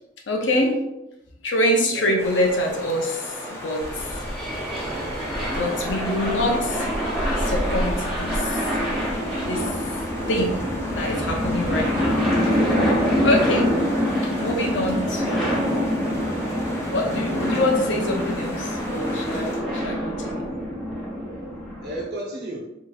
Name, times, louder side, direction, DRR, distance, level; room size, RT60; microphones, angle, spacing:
voice 1, 0.3-0.8 1.4-4.2 5.5-6.9 7.4-8.7 9.4-9.9 10.3-10.6 10.9-12.3 13.2-13.7 14.2-15.7 16.8-20.5, left 1 dB, 90° left, 1 dB, 0.7 m, -25 dB
sound 1, 2.2-19.6, equal, 15° left, 0.6 m, -36 dB
sound 2, 3.8-22.0, equal, 5° right, 1.1 m, -25 dB
voice 2, 21.4-22.6, right 1 dB, 65° right, -3 dB, 1.0 m, -34 dB
3.8 x 2.9 x 2.3 m, 0.87 s
head